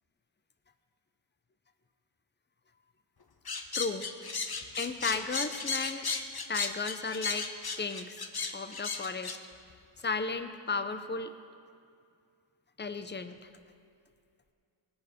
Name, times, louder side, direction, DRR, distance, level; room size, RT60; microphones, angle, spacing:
sound 1, 3.5-9.4, left 4 dB, 55° left, 0.9 m, -35 dB
voice 1, 3.7-4.0 4.8-6.1 6.5-8.3 8.5-9.4 10.0-11.3 12.8-13.4, left 4 dB, 25° left, 9 dB, 0.7 m, -34 dB
19.0 x 7.2 x 5.0 m, 2.3 s
wide cardioid pair, 45°, 46 cm